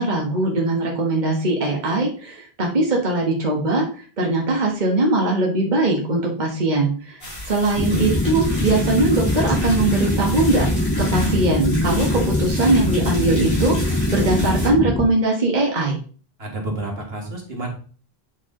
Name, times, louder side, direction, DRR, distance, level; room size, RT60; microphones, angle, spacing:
voice 1, 0.0-16.0, right 2 dB, 45° right, -1 dB, 1.6 m, -21 dB
sound 1, 7.2-14.7, equal, 60° left, 4.2 m, -33 dB
sound 2, 7.8-15.1, left 1 dB, 20° left, 0.5 m, -22 dB
voice 2, 16.4-17.7, right 2 dB, 70° right, 0 dB, 2.1 m, -29 dB
8.9 x 4.8 x 3.8 m, 0.41 s
omnidirectional pair, 1.1 m